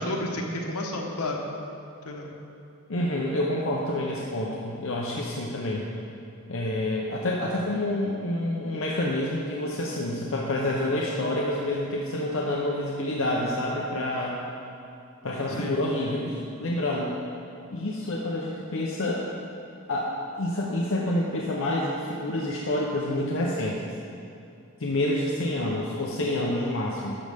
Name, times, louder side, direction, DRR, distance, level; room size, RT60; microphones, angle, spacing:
voice 1, 0.0-1.4 2.0-2.3 15.5-15.8, left 1 dB, 90° left, 0 dB, 1.2 m, -31 dB
voice 2, 2.9-5.8 6.5-14.4 15.2-17.1 17.7-19.2 19.9-20.1 20.4-23.9 24.8-27.2, left 1 dB, 60° left, -3 dB, 0.8 m, -28 dB
12.0 x 6.4 x 3.5 m, 2.7 s
head